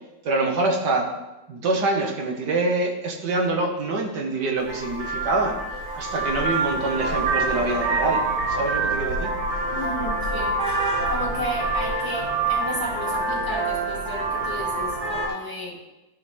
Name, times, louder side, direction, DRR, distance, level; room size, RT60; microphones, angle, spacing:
voice 1, 0.2-1.1 1.5-5.6 5.9-9.3, right 2 dB, 65° right, 1 dB, 1.8 m, -25 dB
Vehicle horn car horn honking, 4.6-15.3, right 3 dB, 30° right, 1.1 m, -26 dB
voice 2, 9.7-15.8, equal, 10° left, -5 dB, 2.5 m, -33 dB
13.0 x 4.7 x 3.5 m, 1.0 s
omnidirectional pair, 2.1 m